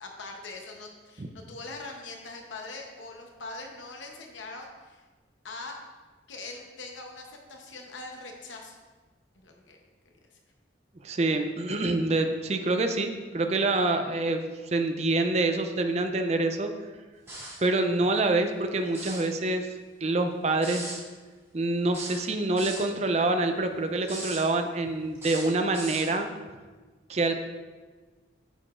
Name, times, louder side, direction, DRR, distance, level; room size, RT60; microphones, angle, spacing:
voice 1, 0.0-5.0 5.4-5.8 6.3-8.8 9.4-9.8 10.3-10.4, left 3 dB, 85° left, 2 dB, 0.8 m, -42 dB
voice 2, 11.0-16.7 17.6-19.7 20.0-20.9 21.5-26.3 27.1-27.3, right 2 dB, 35° right, 6 dB, 0.4 m, -26 dB
sound 1, 17.3-17.7 18.9-19.3 20.6-21.0 21.9-22.9 24.0-24.4 25.2-26.1, right 1 dB, 15° right, 2.0 m, -38 dB
8.8 x 6.6 x 2.5 m, 1.3 s
head